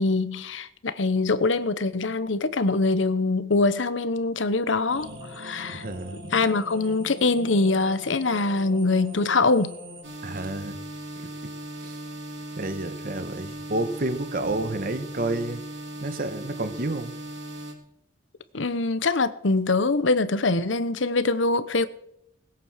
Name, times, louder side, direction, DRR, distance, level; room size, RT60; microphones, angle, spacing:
voice 1, 0.0-5.9 6.3-9.7 18.5-21.9, left 3 dB, 85° left, 1.0 m, -23 dB
sound 1, 4.9-10.0, equal, 85° right, 5.7 m, -42 dB
voice 2, 5.8-6.2 10.2-10.7 12.6-15.6 16.0-17.1, right 2 dB, 50° right, 1.4 m, -29 dB
sound 2, 10.0-17.7, right 1 dB, 65° right, 3.7 m, -38 dB
20.0 x 9.0 x 6.6 m
head